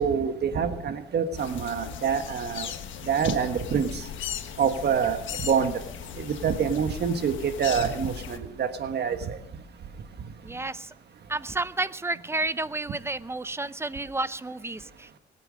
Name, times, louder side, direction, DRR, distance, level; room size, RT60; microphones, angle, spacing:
voice 1, 0.0-2.7 3.1-4.0 4.6-5.7 6.2-9.4, right 7 dB, 55° right, 8 dB, 1.4 m, -26 dB
sound 1, 1.4-8.4, left 9 dB, 75° left, 1.4 m, -38 dB
voice 2, 10.4-10.9 11.3-15.2, right 2 dB, 10° right, 17 dB, 0.6 m, -31 dB
21.0 x 9.1 x 6.4 m, 0.81 s
cardioid pair, 90°, 20 cm